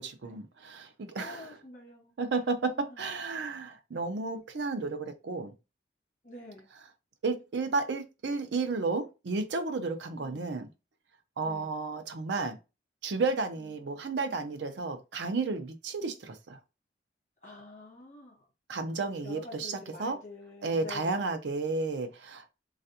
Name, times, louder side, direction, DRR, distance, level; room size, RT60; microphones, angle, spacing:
voice 1, 0.0-1.6 2.2-5.5 7.2-10.7 11.4-12.6 13.0-16.6 18.7-20.2 20.6-22.5, right 3 dB, 80° right, 0.5 m, -32 dB
voice 2, 1.2-2.1 2.9-3.0 6.2-6.7 10.2-10.4 11.4-11.7 17.4-18.4 19.2-21.3, left 3 dB, 40° left, 1.4 m, -47 dB
3.3 x 2.4 x 2.7 m
head